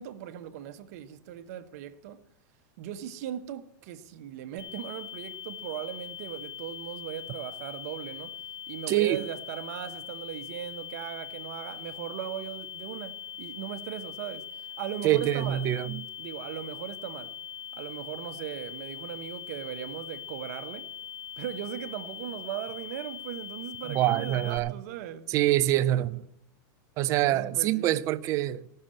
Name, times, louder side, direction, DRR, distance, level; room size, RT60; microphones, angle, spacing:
voice 1, 0.0-2.2 2.8-8.4 8.7-14.5 14.8-15.7 16.2-17.3 17.7-20.9 21.4-25.3 26.1-26.2 27.1-28.1, right 11 dB, 50° right, 1.0 m, -38 dB
sound 1, 4.6-24.6, left 9 dB, 45° left, 2.4 m, -42 dB
voice 2, 8.9-9.2 15.0-16.0 23.9-24.7 25.3-26.2 27.0-28.6, right 14 dB, 30° right, 0.5 m, -25 dB
15.5 x 6.6 x 8.8 m
supercardioid pair, 165°, 10 cm